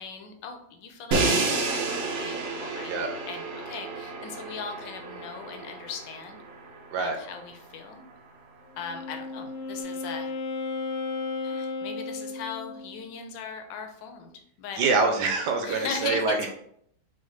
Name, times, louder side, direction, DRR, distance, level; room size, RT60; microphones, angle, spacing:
voice 1, 0.0-6.4 7.0-8.0 8.8-10.3 11.4-14.3 14.6-14.8 15.6-16.5, left 6 dB, 70° left, 5 dB, 1.2 m, -38 dB
Crash cymbal, 1.1-7.1, right 3 dB, 85° right, 0.7 m, -30 dB
Wind instrument woodwind instrument, 8.7-13.0, left 3 dB, 85° left, 1.5 m, -34 dB
voice 2, 14.8-16.5, right 4 dB, 70° right, 3 dB, 1.0 m, -25 dB
6.3 x 2.1 x 3.2 m, 0.69 s
omnidirectional pair, 2.3 m